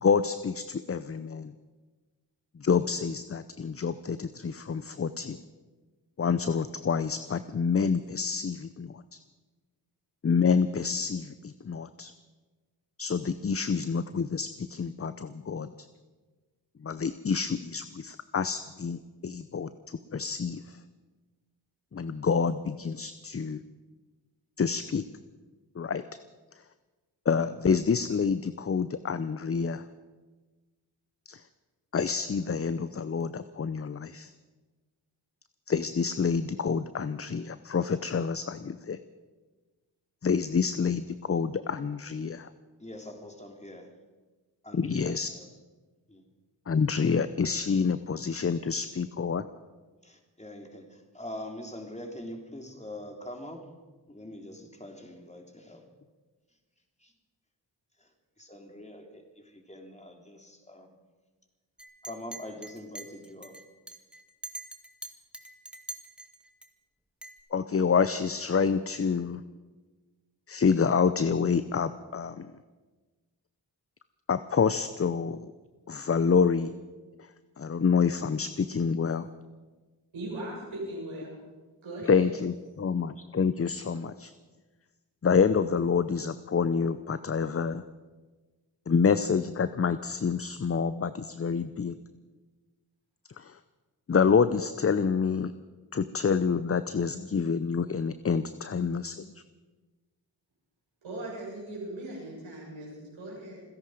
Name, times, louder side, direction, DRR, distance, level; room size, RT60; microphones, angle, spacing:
voice 1, 0.0-1.5 2.6-5.4 6.2-9.2 10.2-12.1 13.0-15.7 16.8-19.7 20.1-20.8 21.9-23.6 24.6-25.0 25.8-26.0 27.3-29.8 31.3-31.4 31.9-34.3 35.7-39.0 40.2-42.5 44.7-45.3 46.7-49.4 67.5-69.4 70.5-72.5 74.3-75.5 75.9-76.7 77.6-79.2 82.1-84.3 85.2-87.8 88.9-91.9 93.4-93.5 94.1-95.5 95.9-99.2, left 5 dB, 30° left, 13 dB, 0.7 m, -27 dB
voice 2, 42.8-43.9 44.6-45.5 46.1-46.2 50.0-53.6 54.1-55.8 57.0-57.1 58.0-58.1 58.4-60.9 62.0-63.6, left 1 dB, 15° left, 3 dB, 3.5 m, -44 dB
Chink clink, 61.8-66.7 67.2-67.4, right 2 dB, ahead, 1.9 m, -44 dB
voice 3, 80.1-81.4 81.8-82.3 101.0-103.6, right 1 dB, 85° right, -4 dB, 7.3 m, -39 dB
27.0 x 10.5 x 5.0 m, 1.3 s
cardioid pair, 40°, 46 cm